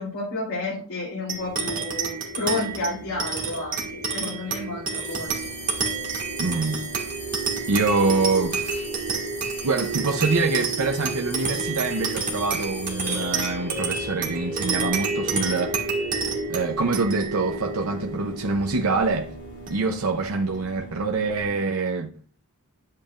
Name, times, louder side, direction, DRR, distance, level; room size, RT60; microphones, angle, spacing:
voice 1, 0.0-5.5, left 2 dB, 80° left, 3.2 m, -31 dB
sound 1, 1.3-20.1, right 4 dB, 40° right, 1.8 m, -29 dB
sound 2, 5.0-15.6, left 1 dB, 15° left, 1.8 m, -41 dB
sound 3, 5.3-21.5, right 3 dB, 50° left, 3.0 m, -43 dB
voice 2, 6.4-6.8 7.7-8.9 9.6-16.0 16.5-19.3 19.7-22.1, right 3 dB, 75° right, 0.7 m, -25 dB
10.5 x 7.5 x 2.5 m
head